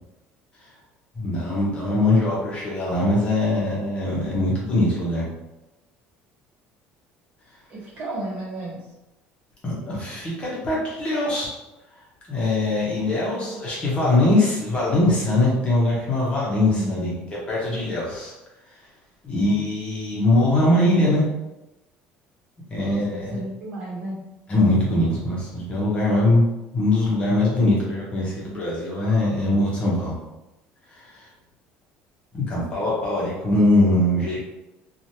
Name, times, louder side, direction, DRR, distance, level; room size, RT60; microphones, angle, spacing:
voice 1, 1.2-5.2 9.6-11.5 12.3-17.1 17.5-18.3 19.2-21.3 22.7-23.4 24.5-26.4 26.7-30.1 30.9-31.2 32.3-34.4, left 1 dB, 30° left, -5 dB, 1.0 m, -22 dB
voice 2, 7.7-8.8 13.1-13.6 16.7-17.2 19.3-19.7 22.7-24.2, right 1 dB, 40° right, -7 dB, 1.2 m, -33 dB
3.1 x 2.4 x 2.8 m, 0.97 s
cardioid pair, 145°, 4 cm